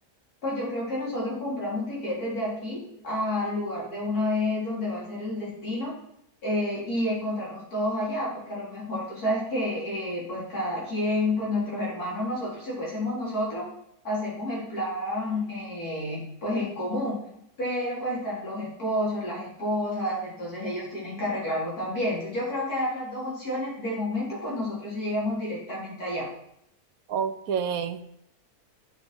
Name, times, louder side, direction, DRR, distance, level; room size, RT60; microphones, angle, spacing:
voice 1, 0.4-5.9 6.4-13.6 14.0-17.2 17.6-26.3, left 1 dB, 75° left, -6 dB, 4.7 m, -30 dB
voice 2, 27.1-28.2, right 7 dB, 70° right, 11 dB, 1.1 m, -29 dB
7.8 x 7.6 x 6.0 m, 0.75 s
omnidirectional pair, 1.6 m